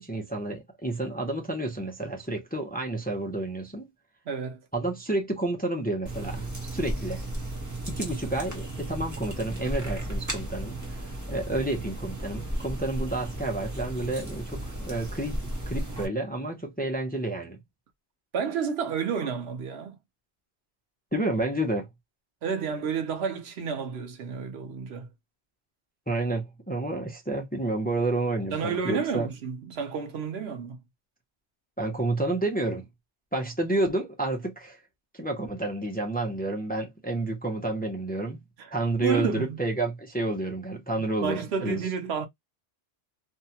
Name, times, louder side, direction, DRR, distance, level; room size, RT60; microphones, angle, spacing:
voice 1, 0.0-3.9 4.7-7.2 7.9-11.0 11.3-15.4 15.7-17.6 21.1-21.9 26.1-29.3 31.8-32.8 33.3-34.8 35.1-38.4 38.7-41.8, right 2 dB, 10° left, 0.5 m, -30 dB
voice 2, 4.3-4.6 18.3-20.0 22.4-25.1 28.5-30.8 38.6-38.7 39.0-39.6 41.0-42.3, right 6 dB, 85° right, 1.0 m, -30 dB
sound 1, 6.1-16.1, right 1 dB, 20° right, 0.9 m, -34 dB
2.7 x 2.3 x 2.7 m
omnidirectional pair, 1.1 m